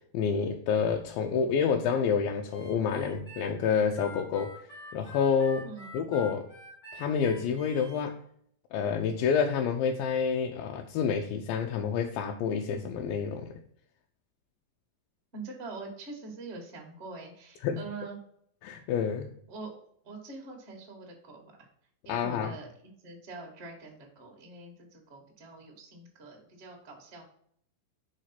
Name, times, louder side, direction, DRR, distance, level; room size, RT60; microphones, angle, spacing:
voice 1, 0.1-4.5 4.9-5.7 5.9-6.5 6.9-8.2 8.7-13.6 17.6-17.8 18.6-19.3 22.1-22.6, left 6 dB, 80° left, 3 dB, 2.4 m, -28 dB
Harmonica, 2.5-8.0, left 1 dB, 20° left, 1.4 m, -47 dB
voice 2, 5.6-5.9 15.3-18.2 19.5-21.7 22.0-22.7 23.0-27.2, right 3 dB, 35° right, 0 dB, 1.0 m, -44 dB
5.1 x 5.0 x 5.7 m, 0.66 s
omnidirectional pair, 4.3 m